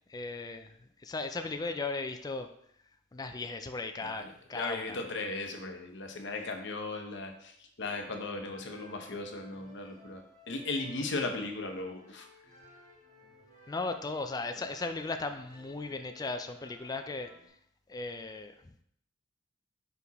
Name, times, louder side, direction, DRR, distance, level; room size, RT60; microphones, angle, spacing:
voice 1, 0.1-2.5 3.1-5.0 13.7-17.6 17.9-18.8, left 3 dB, 20° left, 7 dB, 0.4 m, -37 dB
voice 2, 4.0-12.3 14.6-14.7, left 3 dB, 65° left, 4 dB, 0.9 m, -37 dB
sound 1, 7.9-17.5, equal, 40° right, 1.7 m, -57 dB
5.2 x 4.7 x 4.1 m, 0.69 s
head